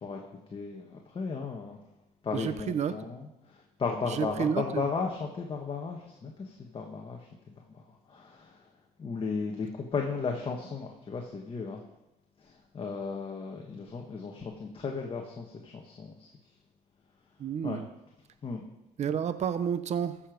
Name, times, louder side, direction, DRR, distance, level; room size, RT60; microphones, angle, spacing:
voice 1, 0.5-1.8 2.2-8.7 9.0-11.8 12.4-16.3 17.6-17.8 18.4-18.6, left 5 dB, 30° left, 1 dB, 1.5 m, -35 dB
voice 2, 2.3-3.1 4.0-4.9 17.4-17.9 19.0-20.2, right 7 dB, 40° right, 12 dB, 0.7 m, -30 dB
14.5 x 6.9 x 5.2 m, 0.89 s
cardioid pair, 110°, 17 cm